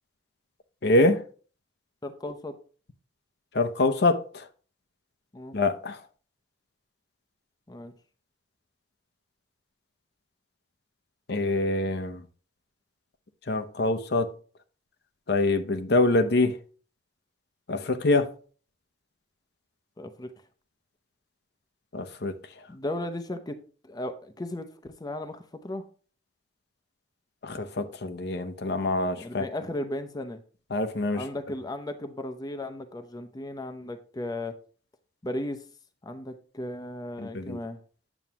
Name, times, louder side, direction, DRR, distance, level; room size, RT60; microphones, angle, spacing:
voice 1, 0.8-1.2 3.5-4.5 5.5-6.0 11.3-12.2 13.5-14.3 15.3-16.5 17.7-18.3 21.9-22.3 27.4-29.5 30.7-31.2 37.2-37.6, left 2 dB, 60° left, 0.7 m, -25 dB
voice 2, 2.0-2.5 5.3-5.6 7.7-7.9 20.0-20.3 22.7-23.6 23.9-25.9 29.2-30.4 31.1-34.6 35.2-35.6 36.0-37.8, left 1 dB, 20° left, 0.7 m, -35 dB
9.1 x 7.2 x 2.9 m
head